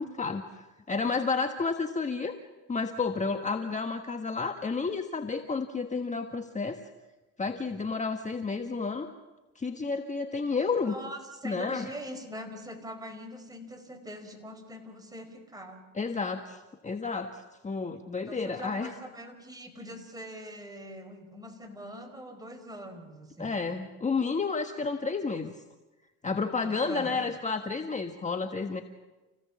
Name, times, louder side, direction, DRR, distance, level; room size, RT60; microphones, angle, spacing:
voice 1, 0.0-2.4 2.7-6.8 7.4-9.1 9.5-10.9 11.4-11.9 15.9-18.9 23.4-25.5 26.2-28.8, left 4 dB, 25° left, 6 dB, 1.4 m, -31 dB
voice 2, 10.8-15.8 18.3-23.6 26.6-27.2, equal, 10° right, 4 dB, 4.7 m, -43 dB
29.5 x 16.5 x 7.3 m, 1.1 s
cardioid pair, 95°, 31 cm